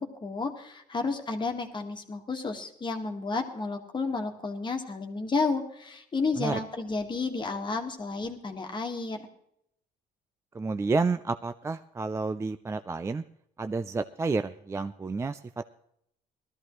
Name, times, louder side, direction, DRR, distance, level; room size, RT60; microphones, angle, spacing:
voice 1, 0.0-9.3, left 4 dB, 25° left, 3 dB, 1.6 m, -31 dB
voice 2, 10.5-13.2 13.6-15.4, right 3 dB, 15° right, 10 dB, 0.4 m, -30 dB
18.0 x 13.0 x 3.1 m, 0.73 s
cardioid pair, 110°, 17 cm